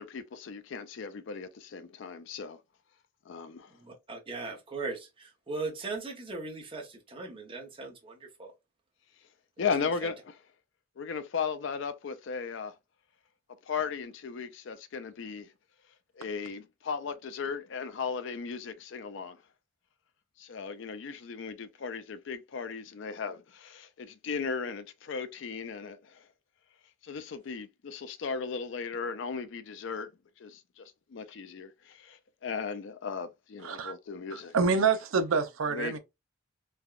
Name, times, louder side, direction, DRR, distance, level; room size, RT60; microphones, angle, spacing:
voice 1, 0.0-2.6 3.3-3.7 9.6-10.3 11.0-12.7 13.7-15.5 16.2-19.4 20.4-26.0 27.0-30.1 30.4-30.8 31.1-34.5 35.7-36.0, left 5 dB, 65° left, 0.4 m, -36 dB
voice 2, 3.8-8.5 9.8-10.1, right 3 dB, 25° right, 0.8 m, -39 dB
voice 3, 33.6-33.9 34.3-36.0, right 5 dB, 85° right, 0.5 m, -27 dB
3.3 x 2.2 x 2.4 m
head